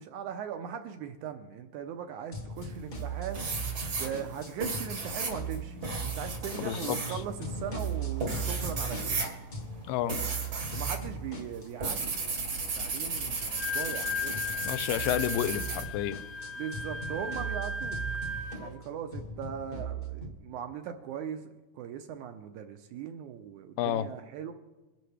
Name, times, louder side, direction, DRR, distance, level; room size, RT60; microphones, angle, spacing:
voice 1, 0.0-3.4 4.0-9.2 10.7-14.4 16.6-18.0 18.6-21.5 21.7-24.5, right 8 dB, 80° right, 7 dB, 1.9 m, -39 dB
sound 1, 2.3-5.0 5.3-9.8 10.1-20.3, right 4 dB, 40° left, 1.2 m, -39 dB
sound 2, 2.6-3.0 3.3-11.0 11.3-15.8, right 4 dB, 50° right, 1.1 m, -35 dB
voice 2, 6.6-7.0 9.9-10.2 14.7-16.2 23.8-24.1, left 11 dB, 85° left, 13 dB, 2.2 m, -30 dB
Wind instrument woodwind instrument, 13.4-18.7, left 4 dB, 55° left, 2.0 m, -36 dB
22.5 x 10.5 x 3.3 m, 1.1 s
omnidirectional pair, 3.9 m